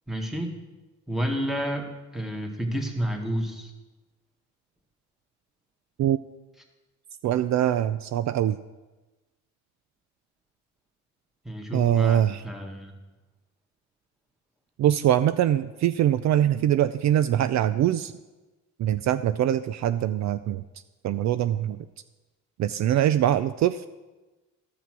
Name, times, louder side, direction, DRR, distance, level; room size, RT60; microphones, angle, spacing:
voice 1, 0.1-0.6 1.1-3.7 11.5-12.9, equal, ahead, 3 dB, 1.7 m, -30 dB
voice 2, 7.2-8.6 11.7-12.4 14.8-18.1 18.8-20.6 21.0-21.8 22.6-23.9, right 11 dB, 60° right, 12 dB, 0.4 m, -23 dB
13.0 x 5.8 x 6.0 m, 1.2 s
cardioid pair, 90°, 31 cm